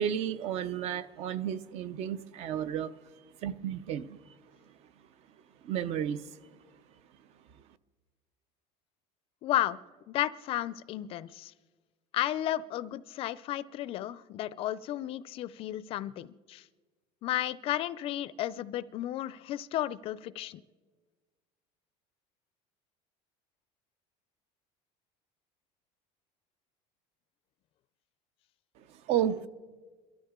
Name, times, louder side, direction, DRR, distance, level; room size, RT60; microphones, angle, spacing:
voice 1, 0.0-2.9 3.4-4.2 5.6-6.2 29.1-29.5, right 9 dB, 50° right, 15 dB, 0.7 m, -32 dB
voice 2, 9.4-9.8 10.1-11.5 12.1-16.6 17.2-20.6, left 13 dB, 40° left, 17 dB, 0.4 m, -33 dB
29.5 x 13.0 x 3.7 m, 1.4 s
cardioid pair, 155°, 14 cm